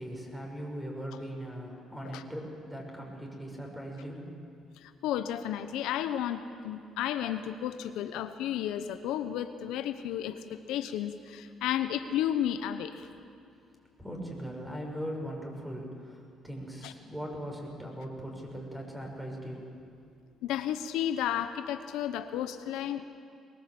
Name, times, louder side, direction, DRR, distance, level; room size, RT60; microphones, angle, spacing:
voice 1, 0.0-4.2 14.0-19.7, equal, 5° right, 0 dB, 5.9 m, -39 dB
voice 2, 4.8-13.1 16.8-16.9 20.4-23.0, left 10 dB, 85° left, 9 dB, 1.0 m, -33 dB
22.5 x 20.5 x 7.8 m, 2.3 s
cardioid pair, 90°, 0 cm